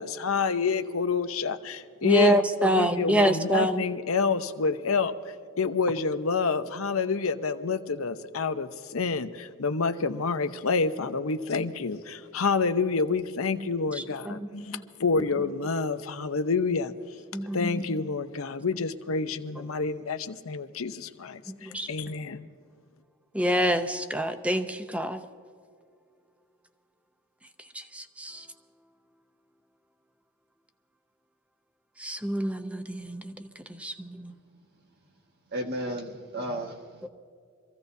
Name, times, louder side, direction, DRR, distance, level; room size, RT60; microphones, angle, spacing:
voice 1, 0.0-5.1 5.6-16.9 17.5-22.5, left 4 dB, 85° left, 0.8 m, -28 dB
voice 2, 2.0-3.8 14.3-14.5 14.7-14.8 17.3-17.9 21.7-21.9 23.3-25.2 27.7-28.4 32.0-34.3 37.0-37.1, right 1 dB, 5° right, 0.7 m, -27 dB
voice 3, 35.5-37.1, right 1 dB, 50° right, 1.5 m, -34 dB
25.0 x 15.5 x 2.7 m
head